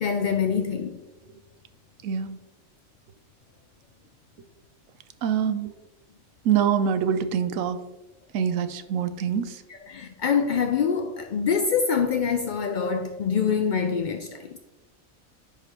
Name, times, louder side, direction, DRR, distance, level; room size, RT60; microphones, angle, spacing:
voice 1, 0.0-1.0 9.7-14.6, left 6 dB, 75° left, 0.4 m, -25 dB
voice 2, 2.0-2.4 5.2-5.7 6.4-7.8 8.3-9.6, right 8 dB, 80° right, 1.0 m, -25 dB
10.0 x 4.8 x 2.8 m
omnidirectional pair, 1.3 m